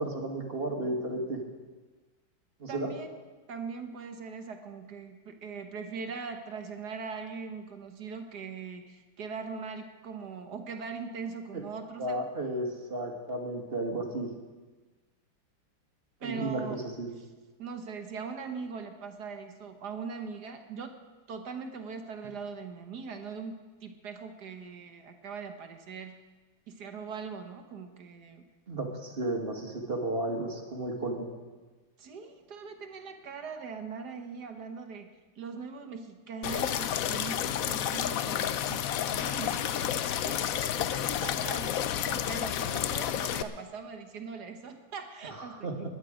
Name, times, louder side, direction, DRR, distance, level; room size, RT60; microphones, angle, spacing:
voice 1, 0.0-1.4 2.6-2.9 11.5-11.6 12.0-14.3 16.2-17.1 28.7-31.3 45.5-45.9, right 2 dB, 30° right, 2 dB, 1.7 m, -33 dB
voice 2, 2.7-3.1 3.5-12.2 16.2-16.8 17.6-21.0 21.3-26.2 26.7-28.5 32.0-45.9, right 5 dB, 60° right, 6 dB, 1.6 m, -41 dB
sound 1, 36.4-43.4, left 10 dB, 70° left, 0.8 m, -30 dB
20.5 x 10.0 x 5.0 m, 1.3 s
omnidirectional pair, 2.1 m